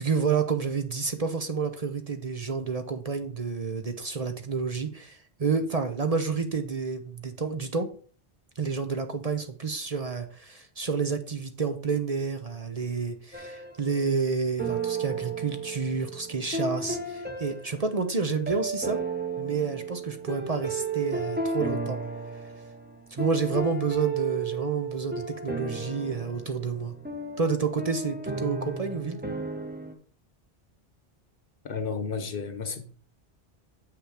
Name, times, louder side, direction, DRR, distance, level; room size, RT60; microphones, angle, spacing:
voice 1, 0.0-7.9 8.6-19.0 19.4-22.0 23.1-26.9 27.4-29.2, right 5 dB, 40° right, 7 dB, 0.8 m, -29 dB
sound 1, 13.3-14.2 14.6-29.9, right 4 dB, 10° right, 1.1 m, -34 dB
voice 2, 31.6-32.9, left 5 dB, 60° left, 10 dB, 1.1 m, -32 dB
7.7 x 5.9 x 4.9 m, 0.42 s
omnidirectional pair, 1.0 m